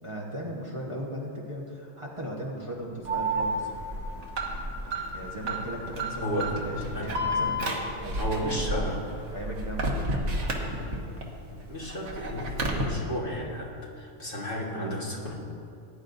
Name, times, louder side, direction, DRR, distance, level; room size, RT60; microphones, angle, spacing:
voice 1, 0.0-3.7 5.1-9.0 9.3-10.0, right 1 dB, 25° right, -4 dB, 1.2 m, -37 dB
sound 1, 2.9-9.4, left 1 dB, 75° left, 1.6 m, -45 dB
Alarm, 3.0-11.2 11.6-12.8, right 1 dB, 60° right, 1.6 m, -31 dB
voice 2, 8.2-9.0 10.6-10.9 11.5-15.3, equal, 40° left, -3 dB, 1.8 m, -33 dB
19.5 x 10.0 x 2.6 m, 2.5 s
omnidirectional pair, 1.4 m